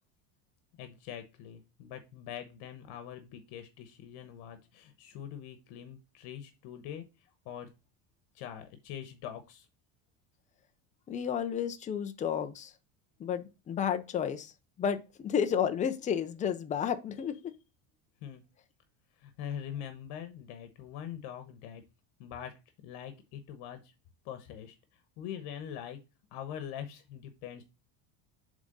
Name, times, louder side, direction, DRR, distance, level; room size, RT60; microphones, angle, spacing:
voice 1, 0.8-7.7 8.3-9.7 18.2-18.4 19.2-21.8 22.2-22.5 22.8-23.9 24.2-26.0 26.3-27.6, left 9 dB, 65° left, 1.2 m, -43 dB
voice 2, 11.1-12.7 13.2-14.5 14.8-17.5, left 8 dB, 20° left, 0.5 m, -32 dB
7.3 x 3.6 x 5.2 m
cardioid pair, 170°, 43 cm